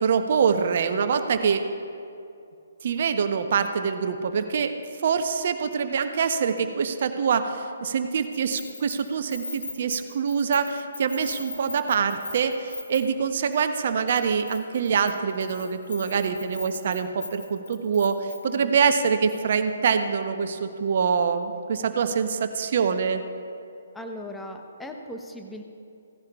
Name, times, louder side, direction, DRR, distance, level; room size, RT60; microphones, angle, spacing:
voice 1, 0.0-1.6 2.8-23.2, right 6 dB, 50° right, 8 dB, 0.7 m, -25 dB
Keys jangling, 8.3-13.3 13.5-13.8 14.1-18.6, left 3 dB, 70° left, 2.1 m, -40 dB
voice 2, 18.4-18.8 23.9-25.6, left 1 dB, 5° left, 3 dB, 0.8 m, -38 dB
16.5 x 15.0 x 2.3 m, 2.5 s
figure-of-eight pair, 135°, 0 cm